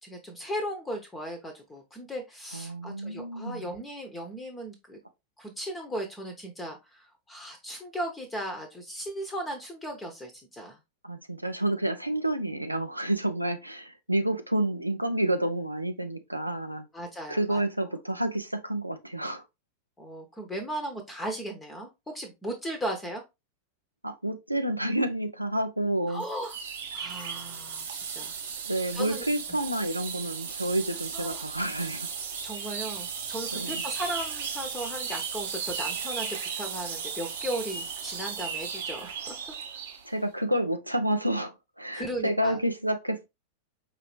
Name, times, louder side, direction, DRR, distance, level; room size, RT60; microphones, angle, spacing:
voice 1, 0.0-5.0 5.4-10.8 16.9-17.6 20.0-23.2 26.1-26.6 26.9-28.3 28.9-29.2 31.1-31.4 32.4-39.3 41.9-42.6, right 1 dB, 10° left, 0.9 m, -36 dB
voice 2, 2.5-3.7 11.0-16.9 17.3-19.4 24.0-26.2 28.6-32.1 33.5-33.8 40.0-43.3, right 1 dB, 90° right, 0.5 m, -29 dB
sound 1, 26.2-40.1, right 6 dB, 60° right, 0.8 m, -36 dB
4.7 x 2.9 x 3.1 m
figure-of-eight pair, 90°, 0 cm